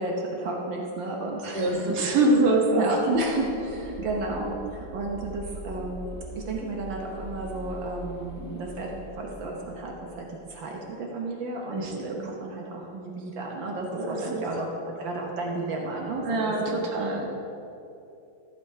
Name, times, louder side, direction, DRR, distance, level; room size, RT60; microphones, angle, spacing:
voice 1, 0.0-2.4 2.8-16.8 17.2-17.3, right 2 dB, 75° right, -1 dB, 1.9 m, -32 dB
voice 2, 1.5-2.9 11.7-12.2 13.9-14.5 16.2-17.3, right 2 dB, 55° right, 0 dB, 2.0 m, -24 dB
sound 1, 3.1-10.5, equal, 30° right, 1.4 m, -42 dB
14.0 x 8.2 x 4.8 m, 2.9 s
omnidirectional pair, 2.1 m